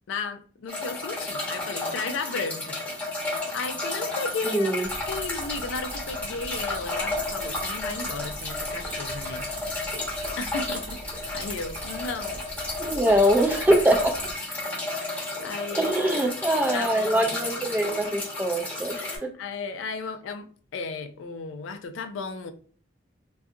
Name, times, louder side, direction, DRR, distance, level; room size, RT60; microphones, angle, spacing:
voice 1, 0.1-2.8 3.5-4.7 5.1-9.5 10.4-12.9 15.0-15.9 16.7-17.4 18.9-20.5 20.7-22.5, left 4 dB, 85° left, 0.3 m, -35 dB
sound 1, 0.7-19.2, left 2 dB, 10° left, 0.8 m, -32 dB
voice 2, 4.4-4.9 12.8-14.1 15.7-19.0, right 1 dB, 10° right, 0.3 m, -23 dB
sound 2, 4.8-14.4, right 1 dB, 75° right, 0.8 m, -41 dB
2.4 x 2.3 x 2.7 m
head